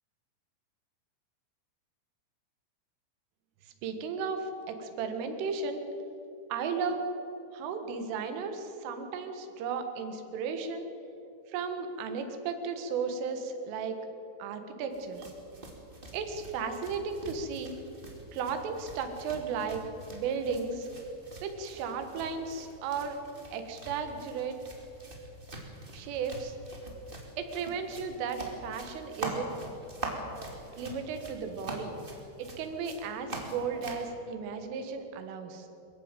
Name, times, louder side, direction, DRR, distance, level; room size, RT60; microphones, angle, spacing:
voice 1, 3.8-5.8 6.5-7.1 7.5-10.9 11.5-14.0 14.4-15.3 16.1-17.8 18.3-20.9 21.4-23.2 23.5-24.6 25.9-26.6 27.4-29.5 30.8-31.9 32.4-35.7, right 5 dB, 75° right, 7 dB, 4.0 m, -35 dB
sound 1, 14.9-34.1, right 2 dB, 35° right, 0.9 m, -44 dB
22.5 x 14.5 x 9.0 m, 2.9 s
omnidirectional pair, 5.9 m